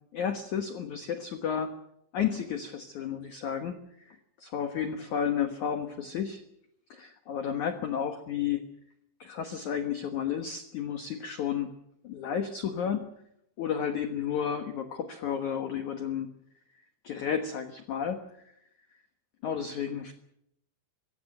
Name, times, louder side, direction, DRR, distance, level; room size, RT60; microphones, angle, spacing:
voice 1, 0.1-1.7 2.1-3.8 4.1-6.4 6.9-8.6 9.2-11.7 12.0-13.1 13.6-16.3 17.0-18.2 19.4-20.1, left 8 dB, 85° left, 7 dB, 1.6 m, -32 dB
24.0 x 16.5 x 7.9 m, 0.76 s
omnidirectional pair, 5.7 m